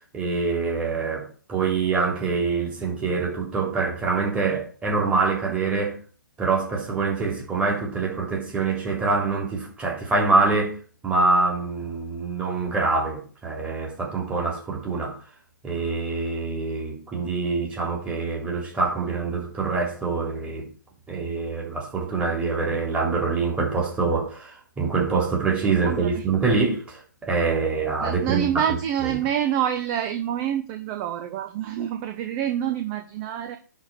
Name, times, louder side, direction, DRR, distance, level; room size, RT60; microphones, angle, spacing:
voice 1, 0.1-6.0 6.4-10.7 11.0-15.2 15.6-20.7 21.1-28.5 29.0-29.2, right 4 dB, 10° right, 3.1 m, -25 dB
voice 2, 25.8-26.2 28.0-33.6, right 10 dB, 30° right, 0.9 m, -27 dB
10.5 x 4.2 x 5.8 m
figure-of-eight pair, 130°, 11 cm